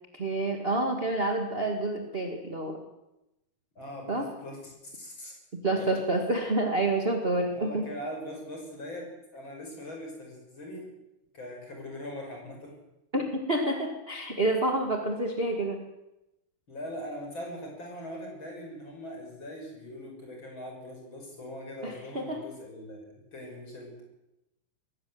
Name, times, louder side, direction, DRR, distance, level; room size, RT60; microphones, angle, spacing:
voice 1, 0.1-2.8 4.1-4.3 5.6-7.9 13.1-15.8 21.8-22.4, right 2 dB, 30° right, 3 dB, 1.2 m, -28 dB
voice 2, 3.8-5.3 5.7-6.0 7.5-9.1 9.3-10.8 11.3-12.7 16.7-23.0 23.3-24.0, left 1 dB, 30° left, 1 dB, 6.5 m, -41 dB
21.5 x 17.0 x 7.8 m, 0.92 s
omnidirectional pair, 4.5 m